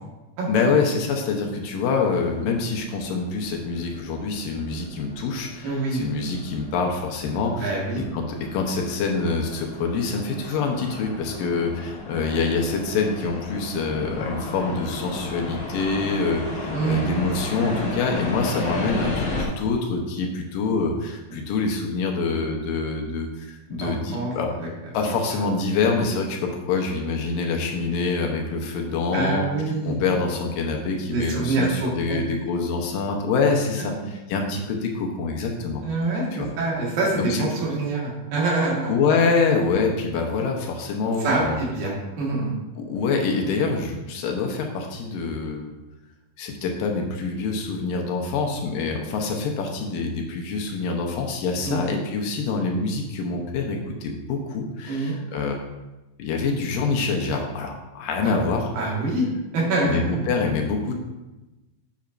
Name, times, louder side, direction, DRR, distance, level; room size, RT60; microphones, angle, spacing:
voice 1, 0.5-24.5 24.9-29.5 29.8-35.8 36.3-36.5 37.2-37.5 38.9-41.6 42.8-45.8 46.4-55.6 56.2-58.7 59.8-60.9, left 4 dB, 75° left, 2 dB, 2.4 m, -25 dB
sound 1, 2.0-19.4, left 2 dB, 50° left, 1.5 m, -34 dB
voice 2, 5.6-6.0 7.6-8.0 16.7-17.1 23.7-24.7 25.3-25.4 29.1-30.0 31.1-32.2 33.8-34.0 35.8-36.2 36.6-38.9 41.2-41.9 42.2-42.5 51.6-51.8 54.8-55.2 58.2-58.3 58.7-59.3 59.5-60.2, right 3 dB, 70° right, -4 dB, 3.4 m, -25 dB
8.5 x 7.8 x 2.6 m, 1.1 s
omnidirectional pair, 4.2 m